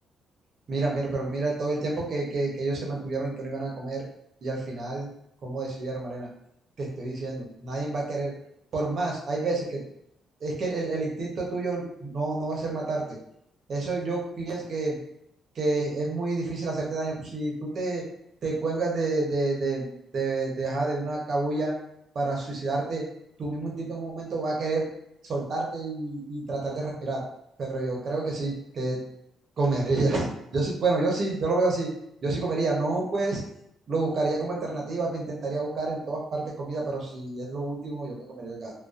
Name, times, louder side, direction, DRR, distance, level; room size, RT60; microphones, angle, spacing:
voice 1, 0.7-4.0 4.4-5.1 5.4-6.3 6.8-8.3 8.7-9.8 10.4-13.2 13.7-15.0 15.6-18.0 18.4-21.7 22.1-23.0 23.4-24.9 25.3-27.2 27.6-29.0 29.6-31.9 32.2-33.4 33.9-38.7, right 3 dB, 55° right, -2 dB, 0.7 m, -29 dB
2.4 x 2.2 x 2.3 m, 0.76 s
cardioid pair, 90°, 0 cm